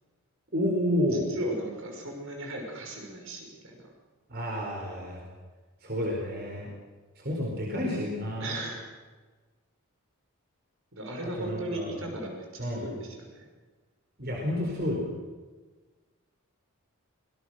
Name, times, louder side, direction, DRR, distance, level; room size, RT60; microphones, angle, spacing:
voice 1, 0.5-1.2 4.3-5.2 5.8-6.7 7.2-8.6 11.4-11.9 12.6-12.8 14.2-15.1, left 1 dB, 45° right, -1 dB, 4.6 m, -30 dB
voice 2, 1.1-3.8 8.4-8.8 10.9-13.5, right 1 dB, 65° right, 2 dB, 6.1 m, -36 dB
26.5 x 19.0 x 6.6 m, 1.3 s
head